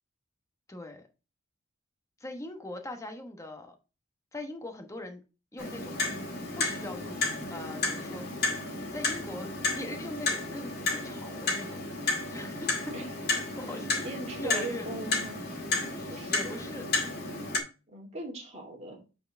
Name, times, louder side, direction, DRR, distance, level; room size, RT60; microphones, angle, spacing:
voice 1, 0.7-1.0 2.2-3.8 4.3-5.2 5.5-6.0 6.6-7.2 7.5-8.2 8.9-12.8 13.6-13.9 14.4-14.9 15.9-16.9 17.2-17.5, left 1 dB, 15° left, 4 dB, 1.1 m, -41 dB
Clock, 5.6-17.6, left 3 dB, 50° left, 2.2 m, -32 dB
voice 2, 13.7-15.4 16.1-16.6 17.9-19.0, right 2 dB, 35° right, -1 dB, 2.1 m, -39 dB
8.4 x 4.5 x 3.3 m, 0.31 s
head